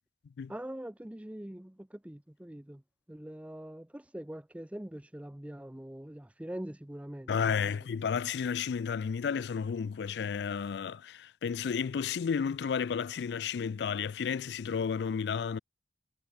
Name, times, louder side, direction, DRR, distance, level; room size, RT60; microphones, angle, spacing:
voice 1, 0.5-2.8 3.1-7.7, right 1 dB, 5° right, 0.5 m, -43 dB
voice 2, 7.3-15.6, left 6 dB, 70° left, 0.4 m, -32 dB
head